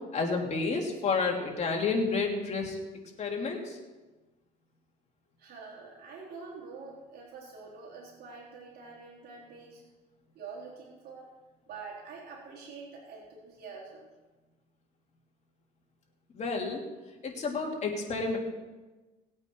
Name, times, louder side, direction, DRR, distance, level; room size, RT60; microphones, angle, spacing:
voice 1, 0.1-2.8 3.2-3.8 16.3-16.8 17.2-18.4, left 4 dB, 40° left, 1 dB, 2.9 m, -30 dB
voice 2, 5.4-9.8 10.3-11.3 11.7-14.1, right 4 dB, 65° right, -4 dB, 3.9 m, -46 dB
19.5 x 8.7 x 4.6 m, 1.2 s
cardioid pair, 110°, 17 cm